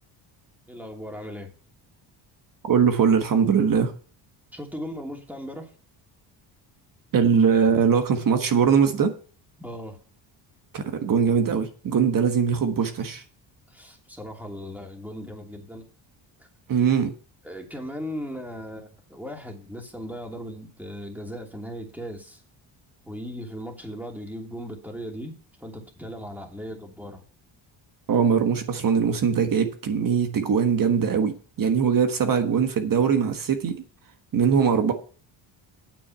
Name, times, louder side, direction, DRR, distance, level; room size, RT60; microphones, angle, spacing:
voice 1, 0.7-1.5 4.5-5.7 9.6-10.0 13.7-15.8 17.4-22.4 23.1-25.3 25.6-27.2, equal, 5° right, 2.7 m, -37 dB
voice 2, 2.6-3.9 7.1-9.1 10.7-13.2 16.7-17.1 28.1-33.8 34.3-34.9, right 7 dB, 45° right, 1.5 m, -21 dB
9.3 x 7.3 x 5.7 m
cardioid pair, 115°, 47 cm